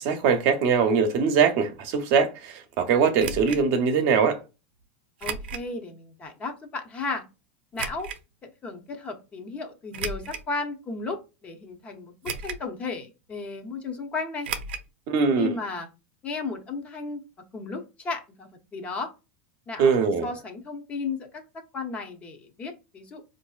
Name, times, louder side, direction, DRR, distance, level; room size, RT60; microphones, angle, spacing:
voice 1, 0.0-4.4 15.1-15.6 19.8-20.3, right 6 dB, 50° right, 0.8 m, -22 dB
sound 1, 3.2-3.6 5.2-5.7 6.2-6.3 7.8-8.2 9.9-10.5 11.1-11.2 12.2-12.7 13.0-13.1 14.4-14.9 15.2-15.3 15.5-15.6, right 6 dB, 85° right, 0.5 m, -34 dB
voice 2, 5.2-7.2 7.7-8.1 8.4-14.5 15.4-15.9 16.2-17.2 17.5-19.1 19.7-19.9 20.2-23.2, left 4 dB, 25° left, 0.8 m, -34 dB
4.7 x 2.6 x 2.3 m
supercardioid pair, 140°, 6 cm